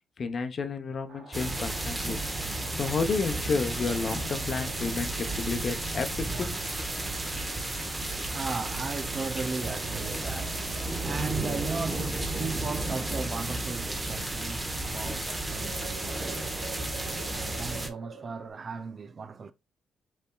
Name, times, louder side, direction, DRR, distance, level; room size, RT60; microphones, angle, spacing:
voice 1, 0.2-2.2 2.7-6.5, left 4 dB, 45° left, 0.8 m, -31 dB
sound 1, 1.1-18.5, right 5 dB, 90° right, 1.7 m, -49 dB
sound 2, 1.3-17.9, right 2 dB, 20° right, 1.0 m, -33 dB
voice 2, 6.9-19.5, right 4 dB, 40° right, 0.4 m, -37 dB
5.4 x 3.5 x 2.3 m
cardioid pair, 90°, 0 cm